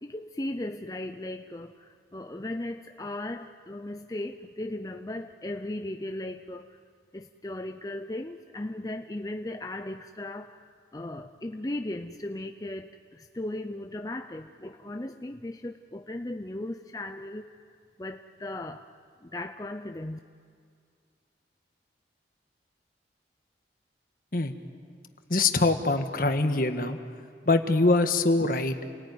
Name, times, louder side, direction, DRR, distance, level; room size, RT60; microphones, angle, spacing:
voice 1, 0.0-6.8 7.1-18.9 19.2-20.2, left 1 dB, 20° left, 6 dB, 0.6 m, -37 dB
voice 2, 25.3-27.0 27.4-28.8, left 2 dB, 50° left, 7 dB, 1.6 m, -23 dB
30.0 x 19.0 x 9.6 m, 2.3 s
head